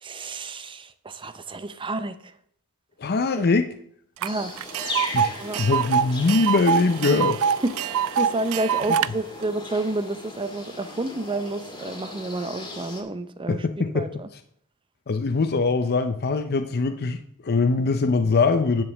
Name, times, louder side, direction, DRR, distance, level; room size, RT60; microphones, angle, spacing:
voice 1, 0.0-2.3 3.4-3.5 4.2-4.5 4.8-5.0 5.3-5.6 7.1-7.2 7.6-14.3, right 2 dB, 20° right, 11 dB, 0.5 m, -30 dB
voice 2, 3.0-3.7 5.1-7.4 13.5-14.1 15.1-18.8, left 3 dB, 45° left, 8 dB, 0.6 m, -22 dB
Tick, 4.2-4.3 4.6-9.1, right 8 dB, 70° right, 0.3 m, -24 dB
sound 1, 4.3-13.0, left 2 dB, 20° left, 2.0 m, -38 dB
9.7 x 5.3 x 7.1 m, 0.67 s
head